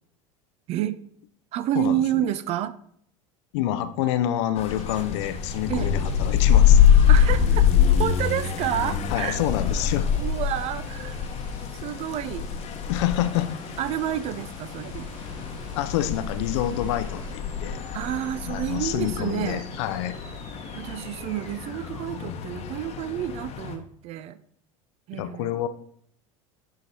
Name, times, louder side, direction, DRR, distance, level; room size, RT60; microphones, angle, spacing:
voice 1, 0.7-1.0 1.5-2.8 5.7-5.9 7.1-9.4 10.1-11.3 11.8-12.5 13.8-15.1 17.9-19.6 20.7-24.4 25.1-25.5, right 12 dB, 40° right, 15 dB, 0.4 m, -29 dB
voice 2, 3.5-6.8 9.1-10.1 12.9-13.5 15.8-17.8 18.5-20.2 25.1-25.7, left 12 dB, 55° left, 11 dB, 0.5 m, -27 dB
sound 1, 4.6-23.8, left 8 dB, 35° left, 1.0 m, -24 dB
sound 2, 4.7-22.2, right 2 dB, 70° right, 2.0 m, -47 dB
11.0 x 3.8 x 2.8 m, 0.65 s
figure-of-eight pair, 75°, 17 cm